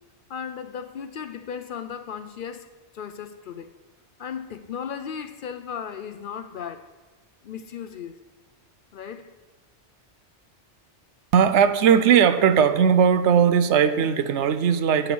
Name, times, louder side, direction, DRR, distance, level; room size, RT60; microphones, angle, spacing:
voice 1, 0.3-2.7 2.9-3.7 4.2-6.9 7.4-8.2 8.9-9.3, left 7 dB, 60° left, 0.6 m, -36 dB
voice 2, 11.3-15.1, right 7 dB, 85° right, 0.9 m, -18 dB
11.0 x 5.4 x 6.2 m
omnidirectional pair, 1.2 m